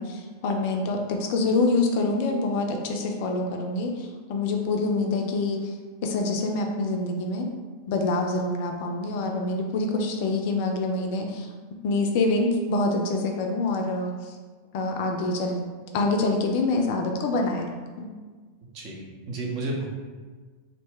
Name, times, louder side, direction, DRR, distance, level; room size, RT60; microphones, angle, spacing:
voice 1, 0.0-5.7 6.0-7.5 7.9-11.5 11.8-14.4 14.7-15.6 15.9-17.7 18.0-18.1, left 2 dB, 50° left, 2 dB, 0.3 m, -26 dB
voice 2, 18.7-19.9, right 2 dB, 40° right, -2 dB, 0.6 m, -32 dB
2.6 x 2.1 x 3.4 m, 1.4 s
figure-of-eight pair, 90°, 0 cm